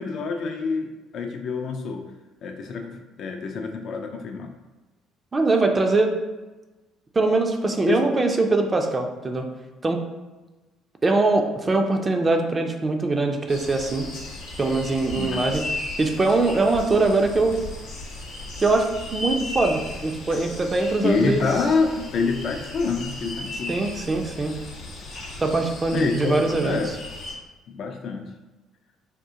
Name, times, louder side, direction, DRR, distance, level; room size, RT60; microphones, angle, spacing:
voice 1, 0.0-2.0 2.4-4.5 7.9-8.1 15.1-15.4 21.0-23.8 25.9-27.0 27.7-28.3, left 4 dB, 55° left, 4 dB, 0.4 m, -26 dB
voice 2, 5.3-6.1 7.1-9.4 9.8-10.0 11.0-14.1 14.6-15.6 16.0-17.5 18.6-21.4 23.7-24.5 25.4-26.8, right 3 dB, 30° right, 4 dB, 0.5 m, -22 dB
sound 1, 13.5-27.3, left 2 dB, 75° left, 0.8 m, -36 dB
3.5 x 2.4 x 2.8 m, 1.1 s
hypercardioid pair, 60°, 0 cm